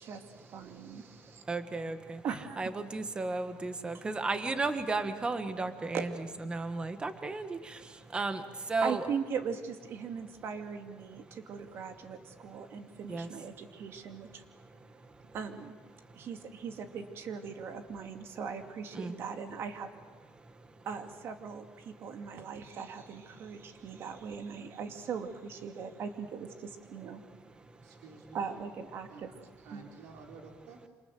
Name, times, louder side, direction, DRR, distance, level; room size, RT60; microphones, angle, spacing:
voice 1, 0.0-1.4 2.2-2.6 5.9-6.1 8.8-14.4 15.3-15.8 16.1-19.9 20.8-27.2 28.3-29.3 29.7-29.8, right 6 dB, 45° right, 6 dB, 2.5 m, -39 dB
voice 2, 0.7-2.2 2.6-6.1 6.5-9.0 11.3-11.4 12.4-12.7 13.1-13.3 14.5-15.3 16.0-16.3 18.9-19.2 20.4-20.9 22.0-22.1 23.4-24.0 27.6-28.0, right 3 dB, 15° right, 9 dB, 1.6 m, -36 dB
voice 3, 27.8-28.7 29.1-30.8, right 4 dB, 75° right, 1 dB, 4.0 m, -52 dB
27.5 x 27.5 x 7.8 m, 1.4 s
cardioid pair, 160°, 6 cm